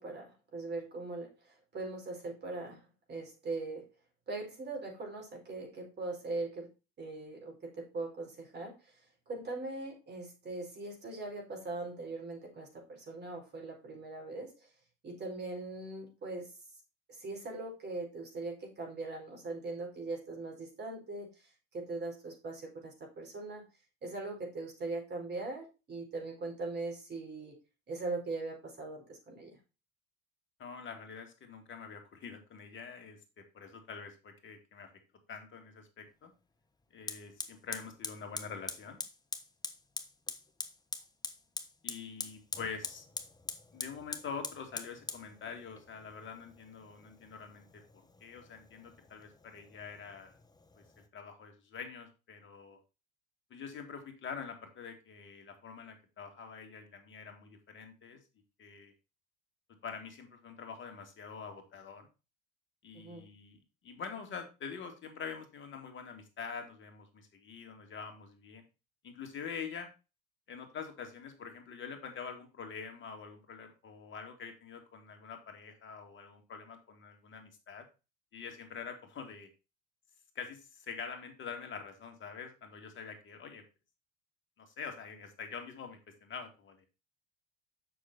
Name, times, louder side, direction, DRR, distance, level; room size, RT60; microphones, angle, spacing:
voice 1, 0.0-3.9 4.3-6.7 7.0-8.9 9.3-14.7 15.0-16.5 17.1-23.6 24.0-27.6 27.9-29.6 62.9-63.3, right 3 dB, 35° right, 1 dB, 4.6 m, -41 dB
voice 2, 30.6-34.9 35.3-36.3 36.9-39.0 41.8-43.1 43.7-47.8 48.2-50.3 50.8-50.9 51.1-52.8 53.5-58.2 58.6-58.9 59.8-62.1 62.8-68.6 69.0-69.9 70.5-77.9 78.3-79.5 80.3-83.6 84.6-86.9, left 6 dB, 40° left, 5 dB, 2.5 m, -45 dB
Fire, 36.1-36.2 37.1-51.1, left 3 dB, 15° left, 1.1 m, -44 dB
7.8 x 6.2 x 4.1 m, 0.29 s
hypercardioid pair, 70°, 29 cm